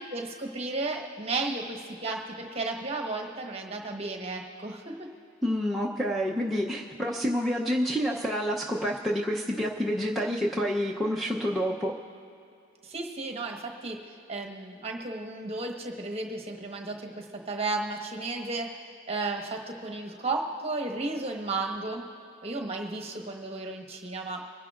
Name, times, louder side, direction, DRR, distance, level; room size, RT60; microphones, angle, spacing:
voice 1, 0.0-5.1 12.8-14.0 14.3-18.7 19.1-22.0 22.4-24.4, right 3 dB, 30° right, 2 dB, 1.2 m, -33 dB
voice 2, 5.4-11.9, equal, ahead, -3 dB, 0.6 m, -28 dB
26.0 x 10.5 x 2.5 m, 2.7 s
head